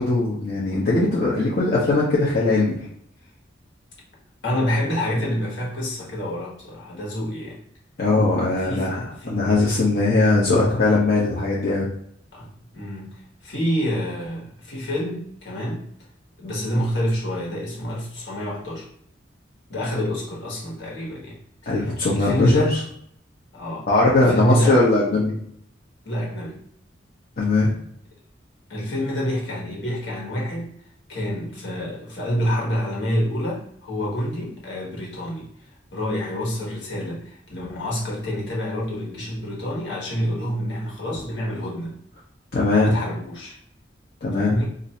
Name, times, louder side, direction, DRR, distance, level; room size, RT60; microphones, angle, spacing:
voice 1, 0.0-2.8 8.0-11.9 21.7-22.8 23.9-25.4 27.4-27.7 42.5-42.9 44.2-44.6, left 2 dB, 50° left, -7 dB, 0.7 m, -20 dB
voice 2, 4.4-7.6 8.6-9.4 12.3-15.9 16.4-18.9 19.7-21.4 21.6-21.9 22.1-22.7 23.5-23.9 24.3-24.8 26.0-26.6 28.7-30.7 31.1-35.5 35.9-41.9 42.8-43.6 44.4-44.7, equal, 70° left, -3 dB, 1.4 m, -27 dB
2.6 x 2.6 x 4.1 m, 0.69 s
head